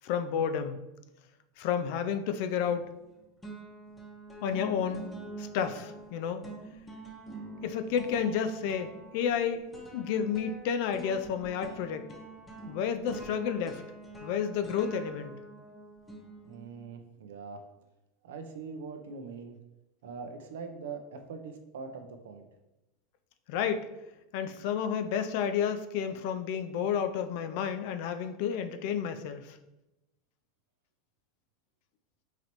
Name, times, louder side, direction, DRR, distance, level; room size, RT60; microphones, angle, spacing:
voice 1, 0.0-0.8 1.6-2.9 4.4-5.0 5.4-6.4 7.6-9.7 9.9-12.1 12.7-13.8 14.2-15.4 23.5-23.9 24.3-29.6, left 7 dB, 65° left, 9 dB, 0.4 m, -31 dB
sound 1, 2.6-3.1 3.4-16.8, right 2 dB, 15° left, 0.7 m, -45 dB
voice 2, 16.5-17.6 18.2-19.6 20.0-22.5, right 5 dB, 85° right, 6 dB, 0.5 m, -42 dB
3.9 x 3.1 x 2.9 m, 0.96 s
supercardioid pair, 130°, 0 cm